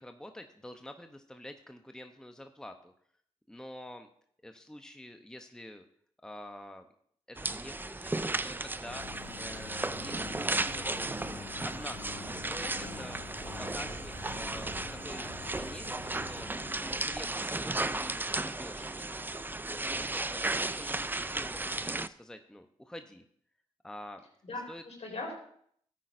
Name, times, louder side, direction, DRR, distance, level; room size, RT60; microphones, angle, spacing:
voice 1, 0.0-2.9 3.5-4.1 4.4-5.9 6.2-6.9 7.3-9.1 9.3-13.2 13.6-14.7 15.0-16.5 16.8-19.3 19.8-23.2 23.8-24.2 24.7-24.8, left 1 dB, 5° left, 6 dB, 0.8 m, -47 dB
sound 1, 7.4-22.1, right 2 dB, 15° right, 0.4 m, -35 dB
Engine, 8.9-18.3, left 7 dB, 80° left, 0.6 m, -48 dB
voice 2, 12.6-13.1 24.4-25.4, left 2 dB, 65° left, 0 dB, 4.0 m, -41 dB
13.5 x 9.2 x 2.6 m, 0.64 s
cardioid pair, 45°, 12 cm